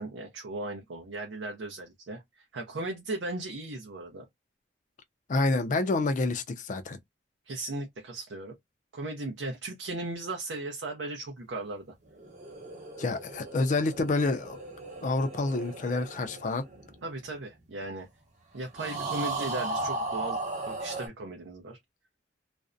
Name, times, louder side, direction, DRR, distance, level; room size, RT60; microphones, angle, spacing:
voice 1, 0.0-4.2 7.5-8.5 8.9-11.9 17.0-18.1 18.5-20.4 20.7-21.8, right 2 dB, 75° right, 0.5 m, -37 dB
voice 2, 5.3-7.0 13.0-14.6 15.0-16.6, left 3 dB, 40° left, 0.4 m, -28 dB
sound 1, 12.1-17.7 18.7-21.1, right 2 dB, 40° right, 0.8 m, -37 dB
2.4 x 2.0 x 2.4 m
head